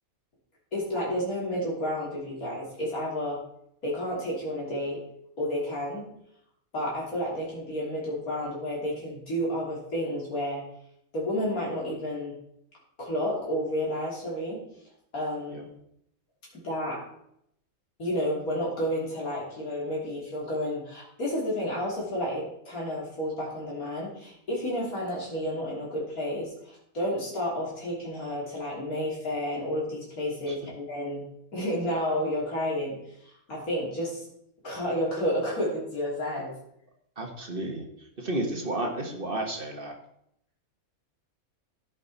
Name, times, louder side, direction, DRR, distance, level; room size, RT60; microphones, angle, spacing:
voice 1, 0.7-3.4 3.8-5.0 5.4-6.0 6.7-10.6 11.1-12.4 13.0-14.6 15.1-15.7 16.5-17.0 18.0-31.2 31.5-33.0 33.2-34.3 34.6-36.5, equal, 80° left, -5 dB, 3.5 m, -31 dB
voice 2, 37.2-39.9, right 1 dB, 40° right, 2 dB, 1.7 m, -32 dB
16.0 x 5.4 x 4.1 m, 0.76 s
omnidirectional pair, 1.5 m